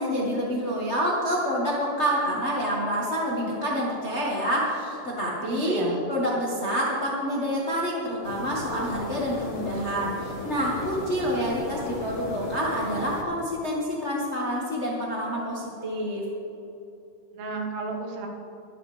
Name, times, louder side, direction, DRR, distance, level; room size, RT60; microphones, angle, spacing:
voice 1, 0.0-5.8 6.1-16.3, equal, 75° left, -5 dB, 0.6 m, -27 dB
voice 2, 5.5-6.0 17.3-18.3, right 3 dB, 75° right, 1 dB, 3.6 m, -31 dB
sound 1, 8.2-13.2, left 2 dB, 45° left, 1.0 m, -36 dB
24.0 x 10.0 x 3.5 m, 2.8 s
omnidirectional pair, 4.9 m